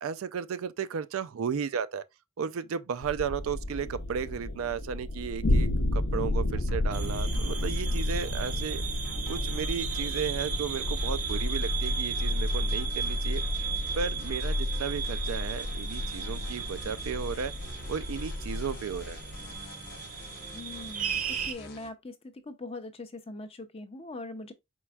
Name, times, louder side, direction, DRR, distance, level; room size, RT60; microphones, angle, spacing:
voice 1, 0.0-2.0 2.4-8.8 9.3-13.4 14.0-17.5 17.9-19.2, right 6 dB, 70° right, 0.4 m, -34 dB
sound 1, 3.0-19.5, left 1 dB, 75° left, 0.7 m, -31 dB
sound 2, 6.5-21.9, left 1 dB, 50° left, 1.0 m, -47 dB
sound 3, 6.9-21.5, right 7 dB, 40° right, 0.7 m, -36 dB
voice 2, 20.5-22.2 22.4-24.5, left 2 dB, 30° left, 0.5 m, -41 dB
4.5 x 4.2 x 2.3 m
head